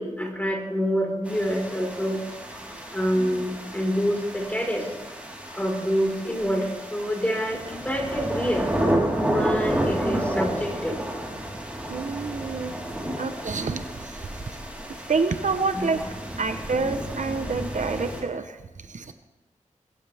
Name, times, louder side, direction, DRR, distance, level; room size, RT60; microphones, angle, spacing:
voice 1, 0.0-2.2 2.5-2.7 2.9-4.9 5.5-8.7 9.2-11.0 13.0-13.2 15.7-15.9, equal, 10° left, 0 dB, 4.7 m, -27 dB
sound 1, 1.2-18.2, right 1 dB, 10° right, 3.9 m, -31 dB
voice 2, 11.9-12.7 13.2-14.1 15.1-16.0 16.4-18.6 18.9-19.1, right 4 dB, 70° right, 8 dB, 0.9 m, -27 dB
21.0 x 16.0 x 3.5 m, 1.0 s
wide cardioid pair, 85°, 13 cm